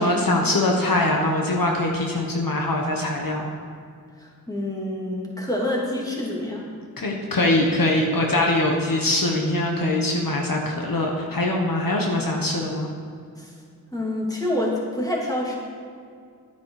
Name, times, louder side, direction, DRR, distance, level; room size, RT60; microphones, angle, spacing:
voice 1, 0.0-3.4 7.0-12.9, left 1 dB, 65° left, 0 dB, 1.4 m, -22 dB
voice 2, 4.2-6.7 13.4-13.5 13.9-15.6, left 1 dB, 10° left, -4 dB, 3.1 m, -27 dB
12.0 x 9.3 x 4.9 m, 2.2 s
wide cardioid pair, 50°, 36 cm